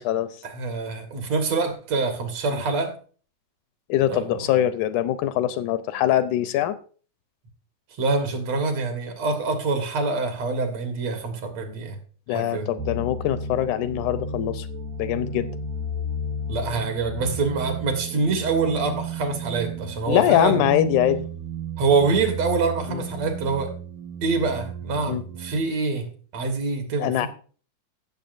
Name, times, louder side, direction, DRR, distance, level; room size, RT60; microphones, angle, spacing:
voice 1, 0.4-2.9 4.1-4.6 8.0-12.0 12.3-12.7 16.5-20.7 21.8-23.7 24.2-27.3, right 4 dB, 60° right, 2.4 m, -25 dB
voice 2, 3.9-6.8 12.3-14.7 15.0-15.5 20.1-21.3 22.9-23.0 25.1-25.2 27.0-27.3, left 12 dB, 80° left, 2.0 m, -23 dB
sound 1, 12.8-25.7, right 2 dB, 80° right, 2.0 m, -33 dB
16.0 x 6.9 x 2.5 m
omnidirectional pair, 3.6 m